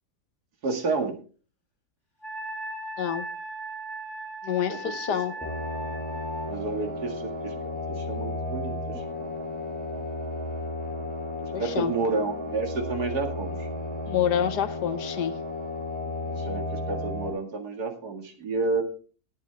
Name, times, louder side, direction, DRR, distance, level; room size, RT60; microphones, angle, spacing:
voice 1, 0.6-1.1 4.7-4.8 5.4-5.5 6.4-9.3 11.4-13.7 16.3-18.8, right 4 dB, 70° right, 5 dB, 2.5 m, -30 dB
Wind instrument woodwind instrument, 2.2-6.5, right 1 dB, 30° left, 3.6 m, -37 dB
voice 2, 4.4-5.3 11.5-11.9 14.1-15.3, left 9 dB, 80° left, 12 dB, 1.6 m, -27 dB
sound 1, 5.4-17.3, left 2 dB, 5° left, 5.1 m, -33 dB
17.5 x 8.9 x 3.4 m, 0.37 s
omnidirectional pair, 1.7 m